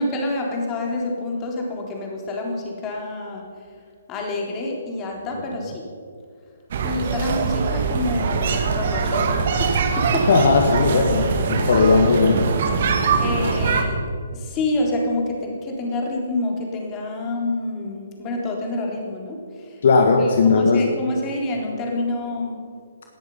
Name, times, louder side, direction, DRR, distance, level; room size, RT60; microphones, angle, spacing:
voice 1, 0.0-3.5 4.1-5.9 6.8-10.3 11.6-11.9 13.2-14.0 14.3-19.8 20.2-22.6, left 2 dB, 20° left, 0 dB, 3.6 m, -27 dB
sound 1, 6.7-13.8, right 5 dB, 50° right, 1.9 m, -22 dB
voice 2, 10.3-12.4 19.8-20.8, left 4 dB, 55° left, 3 dB, 1.5 m, -17 dB
19.0 x 13.5 x 5.6 m, 2.2 s
figure-of-eight pair, 130°, 0 cm